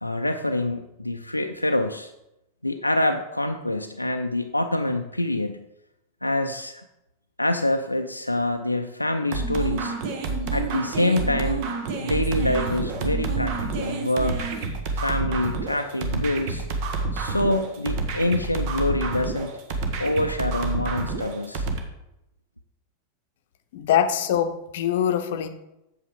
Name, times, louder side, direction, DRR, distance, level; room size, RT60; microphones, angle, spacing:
voice 1, 0.0-2.1 2.6-5.7 6.2-6.8 7.4-10.0 10.5-11.7 12.0-14.5 14.9-16.7 17.1-19.5 20.0-21.7, left 1 dB, 85° left, 5 dB, 0.4 m, -26 dB
sound 1, 9.3-21.8, right 3 dB, 45° right, 1.2 m, -28 dB
voice 2, 23.7-25.5, left 9 dB, 55° left, 9 dB, 0.7 m, -23 dB
8.1 x 7.5 x 4.9 m, 0.89 s
figure-of-eight pair, 90°, 0 cm